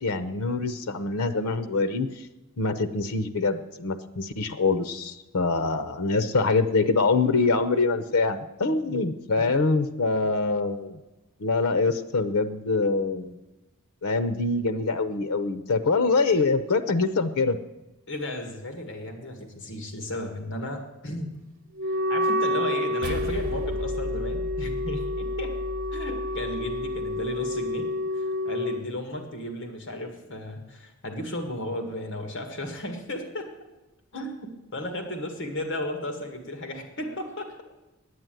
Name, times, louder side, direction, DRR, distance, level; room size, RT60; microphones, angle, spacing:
voice 1, 0.0-2.1 2.6-11.0 11.4-13.4 14.0-17.6, left 3 dB, 85° left, 12 dB, 0.7 m, -24 dB
voice 2, 9.4-9.9 18.1-21.3 21.9-25.6 25.9-27.9 28.1-33.5 34.1-37.6, left 1 dB, 55° left, 5 dB, 1.8 m, -34 dB
Wind instrument woodwind instrument, 21.8-28.8, left 1 dB, 40° right, 1.1 m, -29 dB
sound 1, 23.0-27.6, equal, 85° right, 0.8 m, -36 dB
9.6 x 8.9 x 9.2 m, 1.0 s
head